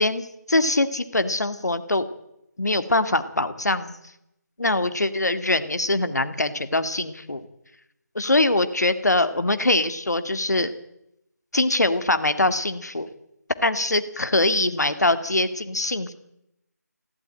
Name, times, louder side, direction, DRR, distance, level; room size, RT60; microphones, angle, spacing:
voice 1, 0.0-2.1 2.6-4.0 4.6-7.5 8.1-10.7 11.5-13.1 13.6-16.1, left 2 dB, 65° left, 10 dB, 2.1 m, -23 dB
19.5 x 16.0 x 8.9 m, 0.82 s
figure-of-eight pair, 160°, 10 cm